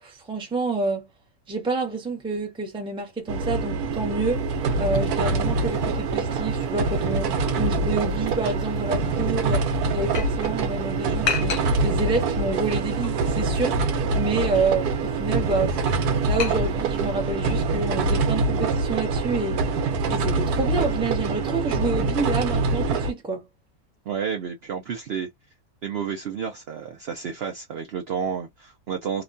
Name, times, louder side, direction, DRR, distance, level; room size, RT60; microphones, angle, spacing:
voice 1, 0.0-1.1 1.5-13.8 14.1-15.8 16.2-19.6 20.1-23.4, right 3 dB, 5° right, 0.5 m, -28 dB
sound 1, 3.3-23.1, right 3 dB, 85° right, 1.2 m, -25 dB
sound 2, 4.2-17.2, left 7 dB, 60° left, 0.6 m, -38 dB
voice 2, 24.1-25.3 25.8-29.2, right 7 dB, 65° right, 0.6 m, -30 dB
2.9 x 2.2 x 2.4 m
omnidirectional pair, 1.6 m